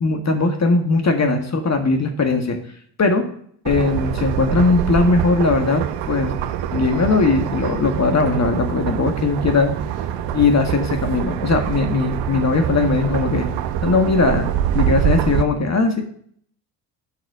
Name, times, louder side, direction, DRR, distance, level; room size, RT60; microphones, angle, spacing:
voice 1, 0.0-2.6 3.0-3.2 3.7-6.3 6.7-9.7 10.3-13.5 13.8-14.5 14.7-16.0, left 3 dB, 35° left, 5 dB, 1.7 m, -19 dB
sound 1, 3.6-15.4, right 10 dB, 70° right, 0.9 m, -24 dB
7.1 x 5.8 x 6.2 m, 0.62 s
hypercardioid pair, 55°, 47 cm